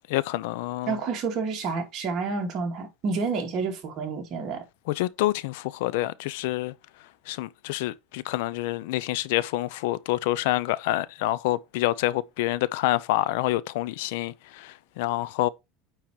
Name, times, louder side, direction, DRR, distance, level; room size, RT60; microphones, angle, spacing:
voice 1, 0.1-1.0 4.9-6.7 7.3-15.5, left 16 dB, 80° left, 0.5 m, -27 dB
voice 2, 0.9-4.6, right 4 dB, 40° right, 2.3 m, -29 dB
8.8 x 3.0 x 4.6 m
cardioid pair, 150°, 0 cm